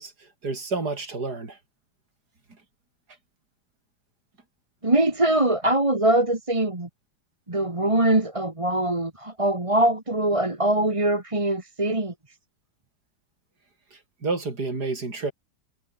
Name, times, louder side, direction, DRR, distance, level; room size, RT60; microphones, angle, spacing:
voice 1, 0.0-1.6 13.9-15.3, right 3 dB, 45° right, 5.1 m, -30 dB
voice 2, 4.8-6.9 7.5-12.1, right 1 dB, 15° right, 2.0 m, -22 dB
omnidirectional pair, 2.3 m